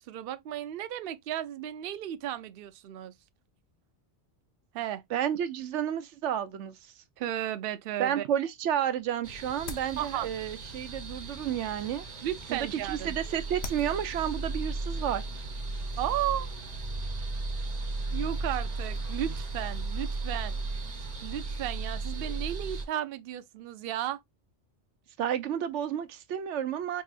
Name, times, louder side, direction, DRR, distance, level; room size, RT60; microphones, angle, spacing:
voice 1, 0.0-3.1 4.7-5.0 7.2-8.3 10.0-10.3 12.2-13.1 16.0-16.5 18.1-20.5 21.2-24.2, right 11 dB, 60° right, 0.7 m, -34 dB
voice 2, 5.1-6.8 8.0-12.0 12.5-15.2 25.2-27.0, right 9 dB, 85° right, 0.9 m, -31 dB
sound 1, 8.6-16.3, left 4 dB, 65° left, 1.1 m, -49 dB
sound 2, 9.2-22.8, right 3 dB, 40° right, 0.9 m, -35 dB
4.7 x 2.8 x 2.4 m
omnidirectional pair, 1.2 m